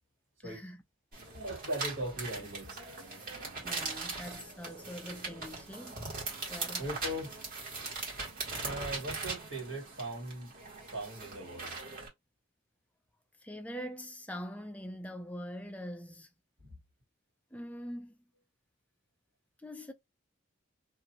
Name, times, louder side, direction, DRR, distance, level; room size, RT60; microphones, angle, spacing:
voice 1, 0.4-0.8 3.6-6.0 6.5-6.9 13.4-16.3 17.5-18.1 19.6-19.9, equal, 5° left, 0.4 m, -43 dB
sound 1, 1.1-12.1, right 3 dB, 45° right, 1.5 m, -40 dB
voice 2, 1.3-2.8 6.8-7.3 8.6-10.5 10.9-11.8 16.6-16.8, right 1 dB, 65° right, 1.9 m, -39 dB
2.7 x 2.5 x 2.9 m
head